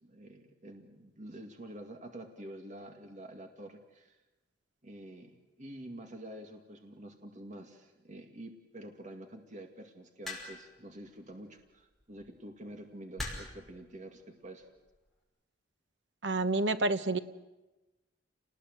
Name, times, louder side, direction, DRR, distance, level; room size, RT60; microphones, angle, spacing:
voice 1, 0.0-4.2 4.8-14.7, right 1 dB, 40° right, 4 dB, 2.1 m, -48 dB
sound 1, 10.2-10.8 12.0-12.2 13.2-13.7 14.6-14.9, left 2 dB, ahead, 5.5 m, -40 dB
voice 2, 16.2-17.2, right 2 dB, 70° right, 11 dB, 1.2 m, -28 dB
28.5 x 20.0 x 8.0 m, 1.1 s
head